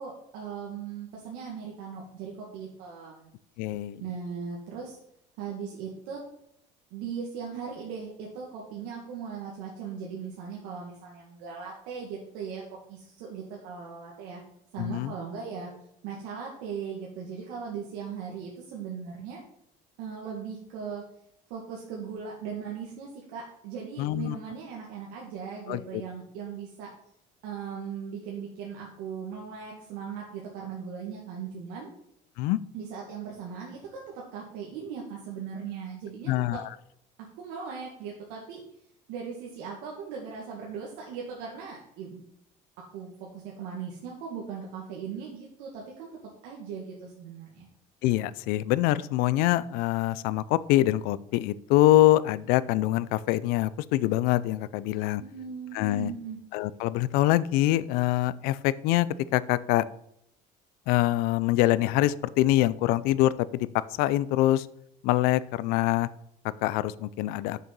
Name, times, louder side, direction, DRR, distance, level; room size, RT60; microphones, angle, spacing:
voice 1, 0.0-3.3 4.0-5.0 5.4-6.2 6.9-12.6 12.9-14.4 14.7-15.7 16.0-19.4 20.0-21.0 21.5-26.9 27.4-31.9 32.7-36.6 37.3-38.6 39.1-42.2 42.9-46.1 46.4-47.7 55.2-56.4, right 6 dB, 90° right, -2 dB, 2.0 m, -38 dB
voice 2, 3.6-4.0 14.8-15.1 24.0-24.4 25.7-26.0 32.4-32.6 36.3-36.7 48.0-55.2 55.7-56.1 56.5-59.1 59.3-59.8 60.9-64.7 65.0-66.1 66.6-67.6, left 15 dB, 75° left, 17 dB, 0.5 m, -24 dB
6.7 x 6.6 x 6.0 m, 0.75 s
cardioid pair, 150°, 15 cm